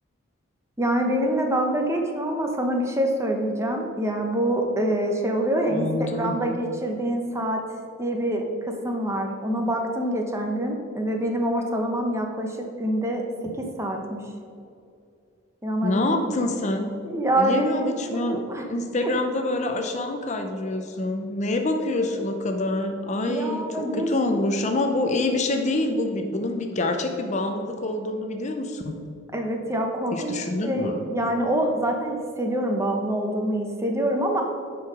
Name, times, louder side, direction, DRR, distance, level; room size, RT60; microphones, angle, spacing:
voice 1, 0.8-7.6 8.0-14.2 15.6-16.3 17.0-18.6 19.0-19.1 23.3-24.5 29.3-30.3 30.6-34.4, right 1 dB, 15° right, 2 dB, 0.8 m, -26 dB
voice 2, 5.7-6.4 15.8-16.9 17.3-29.1 30.1-31.1, left 2 dB, 35° left, 5 dB, 0.6 m, -26 dB
10.0 x 4.7 x 4.8 m, 2.4 s
head